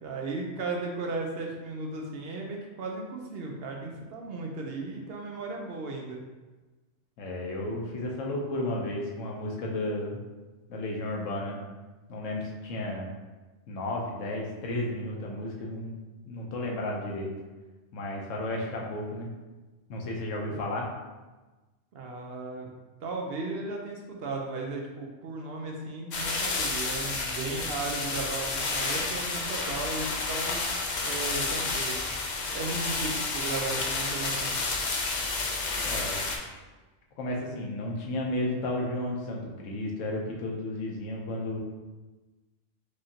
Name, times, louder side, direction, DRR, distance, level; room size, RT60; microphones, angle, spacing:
voice 1, 0.0-6.2 20.5-20.6 21.9-22.7 23.0-30.7 31.0-32.0 32.5-34.6, right 3 dB, 65° right, 0 dB, 0.7 m, -35 dB
voice 2, 7.2-10.2 10.7-11.6 12.1-13.1 13.7-15.9 16.2-17.3 17.9-19.3 19.9-20.9 35.7-36.2 37.2-41.6, left 1 dB, 85° left, -1 dB, 1.1 m, -33 dB
sound 1, 26.1-36.4, left 3 dB, 60° left, 0.5 m, -30 dB
4.8 x 2.6 x 2.7 m, 1.2 s
omnidirectional pair, 1.3 m